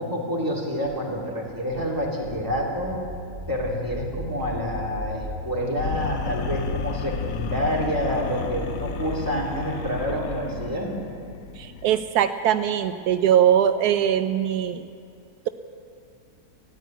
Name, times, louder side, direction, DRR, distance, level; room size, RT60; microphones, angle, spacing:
voice 1, 0.0-3.0 3.5-10.9, equal, 10° right, -4 dB, 2.7 m, -28 dB
sound 1, 1.1-5.5, right 1 dB, 55° right, 1.3 m, -38 dB
sound 2, 5.8-12.0, left 5 dB, 80° left, 1.3 m, -32 dB
voice 2, 11.6-14.8, right 10 dB, 85° right, 10 dB, 1.1 m, -21 dB
13.5 x 11.5 x 9.2 m, 2.3 s
omnidirectional pair, 1.6 m